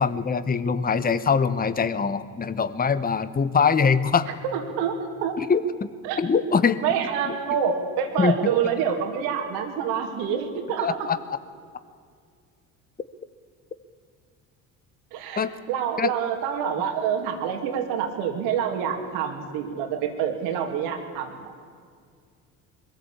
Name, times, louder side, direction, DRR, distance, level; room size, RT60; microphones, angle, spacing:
voice 1, 0.0-4.3 5.4-5.6 6.2-6.8 8.2-8.3 10.8-11.2 15.4-15.5 16.0-16.1, left 6 dB, 25° left, 13 dB, 1.0 m, -22 dB
voice 2, 4.4-5.3 6.0-6.2 6.8-11.1 15.1-21.6, right 8 dB, 80° right, 5 dB, 2.7 m, -27 dB
22.0 x 14.5 x 8.6 m, 2.2 s
supercardioid pair, 75°, 38 cm